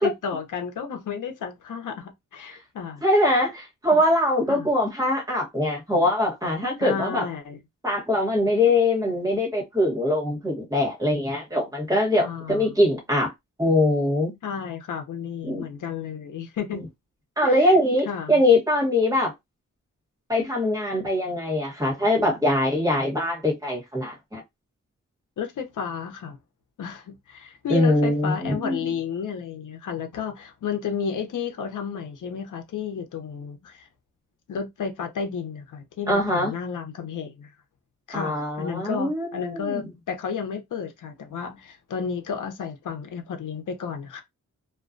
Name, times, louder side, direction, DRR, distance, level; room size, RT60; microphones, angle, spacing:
voice 1, 0.0-3.0 3.9-4.0 4.5-4.7 6.8-7.6 12.2-12.7 14.4-16.8 17.4-17.8 18.0-18.4 25.4-26.4 26.8-33.9 34.5-37.5 38.1-44.2, left 6 dB, 85° left, 0.7 m, -32 dB
voice 2, 3.0-7.2 7.8-13.3 13.6-14.3 15.4-15.7 16.7-16.8 17.4-19.3 20.3-24.4 27.7-28.9 36.1-36.5 38.1-39.9, left 1 dB, 10° right, 1.1 m, -22 dB
2.2 x 2.2 x 2.5 m
wide cardioid pair, 140°, 30 cm